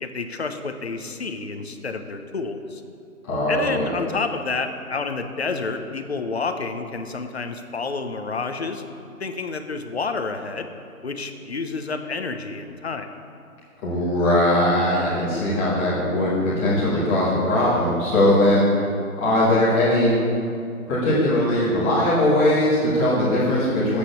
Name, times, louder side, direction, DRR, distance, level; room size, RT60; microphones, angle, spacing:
voice 1, 0.0-2.8 3.5-8.8 9.2-10.7 11.0-13.1, left 4 dB, 45° left, 7 dB, 1.0 m, -29 dB
voice 2, 3.2-3.9 13.8-18.6 19.1-20.1 20.9-24.0, left 1 dB, 10° left, -10 dB, 1.9 m, -20 dB
11.0 x 8.5 x 7.0 m, 2.5 s
figure-of-eight pair, 170°, 44 cm